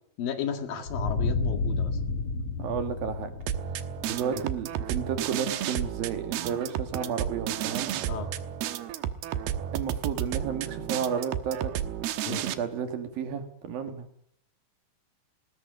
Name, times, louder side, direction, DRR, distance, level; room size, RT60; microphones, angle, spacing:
voice 1, 0.2-2.0 8.1-8.3 12.2-12.4, left 7 dB, 70° left, 8 dB, 3.5 m, -33 dB
sound 1, 0.9-5.5, left 3 dB, 45° left, 3.3 m, -31 dB
voice 2, 2.6-3.3 4.0-7.9 9.7-11.7 12.0-14.1, right 7 dB, 70° right, 7 dB, 3.8 m, -32 dB
sound 2, 3.5-12.5, right 10 dB, 85° right, 3.1 m, -32 dB
20.0 x 17.5 x 9.1 m, 0.65 s
omnidirectional pair, 4.4 m